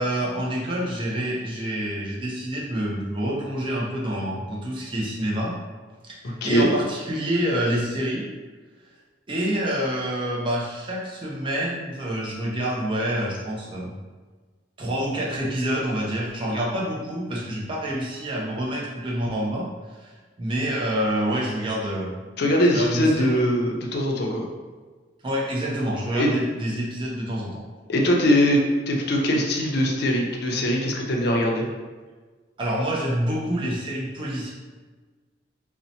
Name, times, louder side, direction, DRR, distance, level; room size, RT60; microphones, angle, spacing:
voice 1, 0.0-5.6 6.0-8.2 9.3-14.0 14.8-19.7 20.0-20.1 20.4-22.1 22.7-23.4 25.2-27.6 32.6-34.5, right 1 dB, 30° right, -4 dB, 0.5 m, -27 dB
voice 2, 6.2-6.7 22.4-24.5 26.2-26.3 27.9-31.7, equal, 60° left, 0 dB, 0.4 m, -22 dB
2.7 x 2.1 x 2.7 m, 1.4 s
head